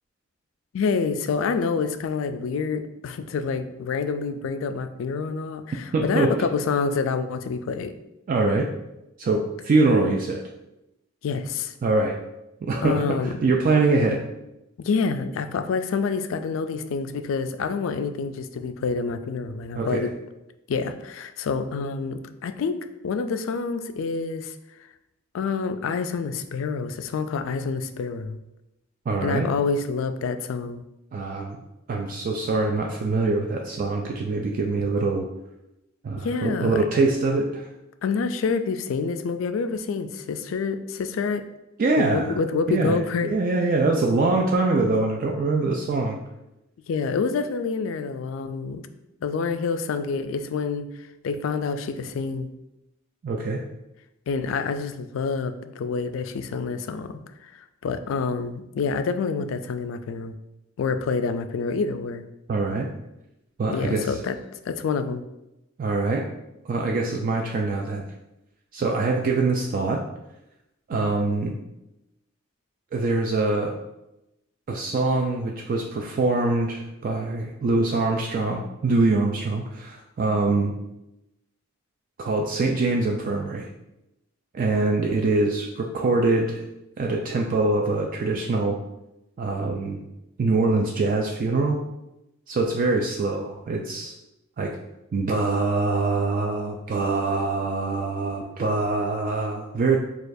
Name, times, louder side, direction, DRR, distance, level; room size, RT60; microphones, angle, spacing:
voice 1, 0.7-7.9 11.2-11.7 12.8-13.3 14.8-20.1 20.7-22.8 23.0-24.5 25.3-28.4 29.2-30.8 36.2-36.9 38.0-41.5 42.0-43.4 46.9-48.9 49.2-50.9 51.2-52.5 54.3-60.4 60.8-62.2 63.7-64.4 64.7-65.2 70.9-71.2, left 5 dB, 70° left, 9 dB, 0.3 m, -27 dB
voice 2, 5.9-6.3 8.3-8.7 9.2-10.4 11.8-12.2 12.6-14.2 19.8-20.1 29.1-29.5 31.1-31.6 31.9-35.3 36.0-37.7 41.8-42.4 42.7-46.2 53.2-53.6 62.5-62.9 63.6-64.2 65.8-66.3 66.7-68.0 68.7-70.0 70.9-71.5 72.9-73.7 74.7-80.7 82.2-83.7 84.5-86.6 87.0-88.8 89.4-90.0 90.4-91.8 92.5-94.1 94.6-94.7 95.1-100.0, right 3 dB, 45° right, 1 dB, 0.3 m, -24 dB
6.4 x 2.3 x 2.6 m, 0.92 s
head